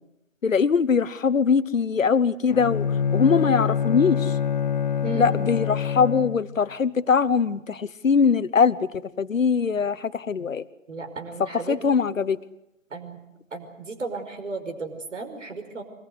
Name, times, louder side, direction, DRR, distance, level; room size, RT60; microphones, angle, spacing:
voice 1, 0.4-4.4 5.1-10.7 11.4-12.4, left 5 dB, 70° left, 16 dB, 1.1 m, -22 dB
Bowed string instrument, 2.5-6.6, left 7 dB, 35° left, 1.0 m, -25 dB
voice 2, 5.0-5.3 10.9-11.8 12.9-13.2 13.5-15.8, right 3 dB, 65° right, 7 dB, 5.5 m, -34 dB
24.5 x 21.0 x 8.2 m, 0.89 s
figure-of-eight pair, 140°, 40 cm